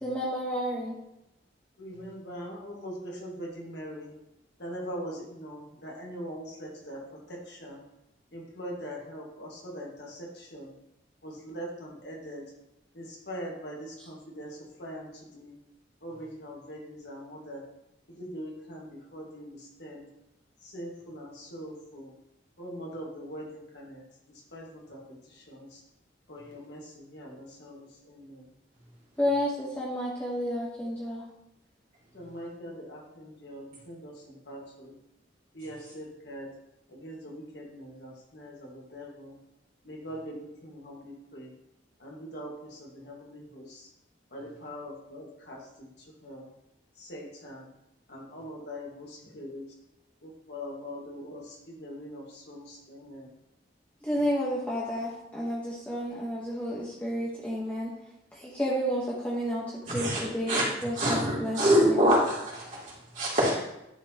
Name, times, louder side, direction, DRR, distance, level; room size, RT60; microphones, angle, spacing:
voice 1, 0.0-1.0 29.2-31.2 54.0-57.9 58.3-61.6, equal, 10° left, -6 dB, 1.0 m, -31 dB
voice 2, 1.8-4.1 4.6-7.8 8.3-10.7 11.2-12.5 12.9-15.5 16.0-17.6 18.2-20.1 20.6-22.1 22.6-25.8 26.3-28.5 32.1-35.0 35.5-36.5 36.9-39.4 39.8-41.5 42.0-43.9 44.3-46.5 47.0-47.7 48.1-49.6 50.2-53.3, equal, 65° left, -2 dB, 1.7 m, -42 dB
voice 3, 59.8-60.2 60.5-60.7 60.9-63.6, equal, 40° right, -7 dB, 2.8 m, -25 dB
11.0 x 4.2 x 2.9 m, 0.87 s
head